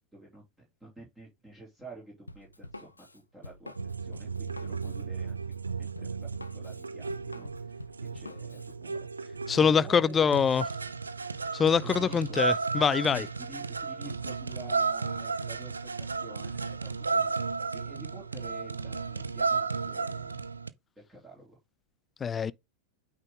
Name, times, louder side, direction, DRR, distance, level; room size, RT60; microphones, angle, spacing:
voice 1, 0.1-5.5 5.8-9.1 9.6-10.4 11.8-12.5 13.1-17.3 17.7-20.5 21.0-21.6, right 1 dB, 10° right, 2.9 m, -49 dB
Drum kit, 2.3-8.7, left 2 dB, 80° left, 0.7 m, -47 dB
sound 1, 3.8-20.7, right 4 dB, 75° right, 0.5 m, -34 dB
voice 2, 9.5-10.6 11.5-13.3 22.2-22.5, left 6 dB, 20° left, 0.4 m, -24 dB
8.8 x 3.7 x 3.8 m
figure-of-eight pair, 90°, 0 cm